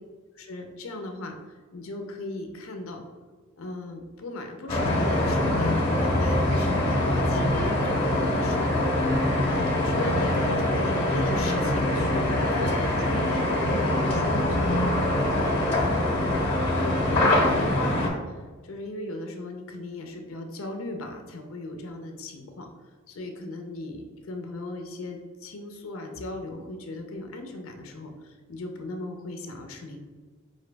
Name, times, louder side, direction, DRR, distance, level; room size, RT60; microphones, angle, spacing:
voice 1, 0.3-1.3 1.7-3.0 3.6-8.7 9.3-12.2 12.5-15.2 15.7-16.2 16.7-22.7 23.1-30.0, left 2 dB, 75° left, 4 dB, 0.5 m, -37 dB
sound 1, 4.7-18.1, left 1 dB, 25° left, 0.8 m, -24 dB
4.9 x 2.6 x 3.3 m, 1.4 s
head